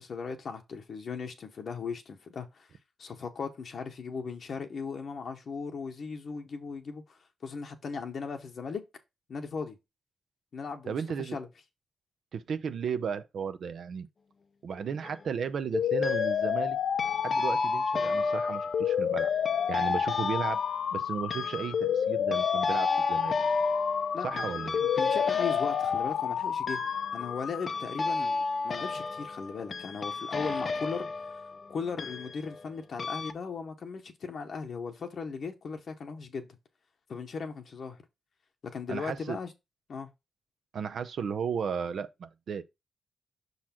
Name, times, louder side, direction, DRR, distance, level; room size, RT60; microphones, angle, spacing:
voice 1, 0.0-2.7 3.0-8.8 9.3-9.8 10.5-11.5 24.1-24.5 24.8-26.8 27.1-31.1 31.7-36.5 37.1-38.0 38.7-39.5 39.9-40.1, left 5 dB, 55° left, 1.0 m, -37 dB
voice 2, 10.8-11.4 12.3-14.1 14.6-16.8 17.2-19.3 19.7-20.6 20.9-23.3 24.2-24.8 38.9-39.4 40.7-42.6, right 6 dB, 65° right, 0.6 m, -34 dB
sound 1, 14.7-15.3 16.0-16.6 17.0-32.7 33.0-33.3, left 3 dB, 40° left, 0.6 m, -33 dB
sound 2, 15.7-27.7, left 8 dB, 75° left, 0.3 m, -30 dB
6.2 x 4.0 x 4.3 m
wide cardioid pair, 125°, 0 cm